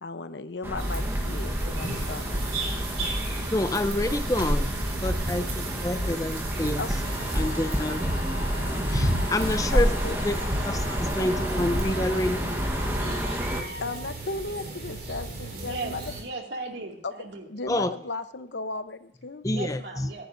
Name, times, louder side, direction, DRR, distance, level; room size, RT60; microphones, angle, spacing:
voice 1, 0.0-3.1 6.8-6.9 9.7-10.2 13.8-16.1 17.0-17.1 17.5-19.4, left 3 dB, 90° left, 0.9 m, -35 dB
sound 1, 0.6-13.6, equal, 15° right, 1.2 m, -30 dB
sound 2, 0.8-16.2, right 1 dB, 60° right, 4.1 m, -33 dB
voice 2, 3.5-4.7 5.0-6.8 7.3-8.0 8.4-8.5 8.9-9.9 10.2-12.5 17.7-17.9 19.4-20.1, left 1 dB, 20° left, 0.5 m, -28 dB
sound 3, 6.9-14.1, left 2 dB, 70° left, 2.0 m, -41 dB
voice 3, 15.5-17.5 19.5-20.3, right 3 dB, 80° right, 2.4 m, -37 dB
24.5 x 11.0 x 2.7 m
head